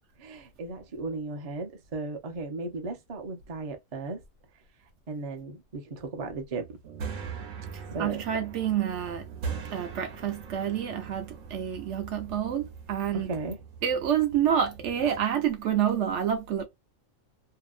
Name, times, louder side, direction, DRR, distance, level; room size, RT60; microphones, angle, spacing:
voice 1, 0.2-4.2 5.1-6.8 7.9-8.2 13.1-13.6, right 3 dB, 40° right, 0.6 m, -36 dB
sound 1, 6.6-15.2, right 6 dB, 85° right, 1.1 m, -41 dB
voice 2, 7.7-9.3 9.7-13.3 13.8-16.7, right 9 dB, 70° right, 0.8 m, -28 dB
2.8 x 2.1 x 2.3 m
omnidirectional pair, 1.3 m